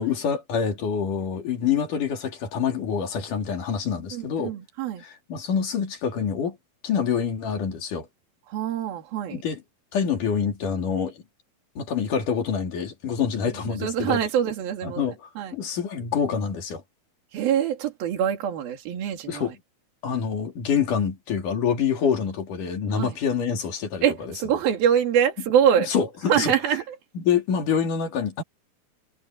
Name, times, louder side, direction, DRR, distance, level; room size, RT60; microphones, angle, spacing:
voice 1, 0.0-4.6 5.0-6.6 6.8-8.1 9.3-9.6 9.9-11.2 11.8-14.2 14.8-15.2 15.5-16.8 19.3-19.5 20.0-24.0 25.9-26.5 27.2-28.4, left 7 dB, 60° left, 4.3 m, -26 dB
voice 2, 4.1-5.0 8.5-9.4 13.4-15.5 17.3-19.5 22.9-23.1 24.0-25.9 26.3-27.0, right 9 dB, 75° right, 4.4 m, -24 dB
omnidirectional pair, 4.3 m